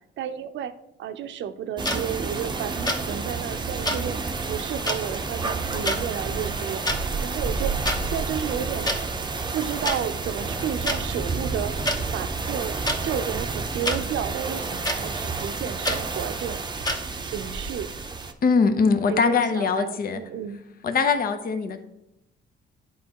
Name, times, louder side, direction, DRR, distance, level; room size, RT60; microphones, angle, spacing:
voice 1, 0.2-0.7 1.0-7.7 8.0-8.9 9.5-11.7 12.1-12.8 13.0-16.6 17.2-17.9 19.1-20.6 21.7-21.8, right 9 dB, 70° right, 10 dB, 0.6 m, -32 dB
sound 1, 1.8-2.0 2.9-3.0 3.8-4.0 4.9-5.0 5.8-6.0 6.7-7.0 7.8-8.0 8.9-9.0 9.8-10.0 10.9-11.0 11.8-12.0 12.8-13.0 13.8-14.0 14.8-15.0 15.8-16.0 16.8-17.0, left 1 dB, 20° left, 0.9 m, -25 dB
sound 2, 1.8-18.3, right 4 dB, 20° right, 0.6 m, -30 dB
voice 2, 18.4-20.2 20.8-21.8, left 5 dB, 45° left, 8 dB, 0.7 m, -22 dB
10.0 x 4.2 x 2.9 m, 0.85 s
cardioid pair, 90°, 20 cm